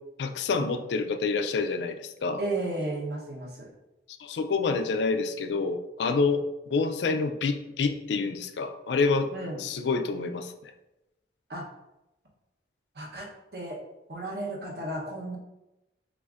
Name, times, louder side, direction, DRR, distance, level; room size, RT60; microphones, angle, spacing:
voice 1, 0.2-2.4 4.2-9.3 9.6-10.7, left 4 dB, 80° left, 7 dB, 0.4 m, -28 dB
voice 2, 2.4-3.7 9.3-9.6 11.5-11.6 12.9-13.8 14.1-15.4, right 2 dB, 65° right, -1 dB, 0.9 m, -34 dB
6.4 x 2.5 x 2.5 m, 0.94 s
head